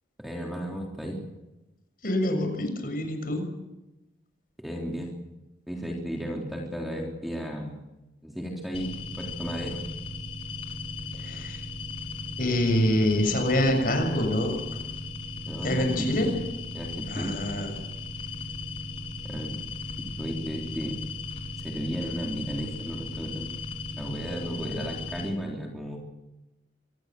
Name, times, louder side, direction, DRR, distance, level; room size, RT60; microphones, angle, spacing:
voice 1, 0.2-1.2 4.6-5.1 5.7-7.8 8.2-9.8 15.5-16.4 16.7-17.4 19.2-19.6 20.2-21.0 21.6-26.0, equal, ahead, -1 dB, 3.6 m, -34 dB
voice 2, 2.0-3.5 11.2-11.6 12.4-14.6 15.6-16.3 17.1-17.8, left 1 dB, 50° left, 5 dB, 6.8 m, -26 dB
sound 1, 8.7-25.3, left 3 dB, 35° left, 4.1 m, -37 dB
26.0 x 20.0 x 7.8 m, 0.98 s
head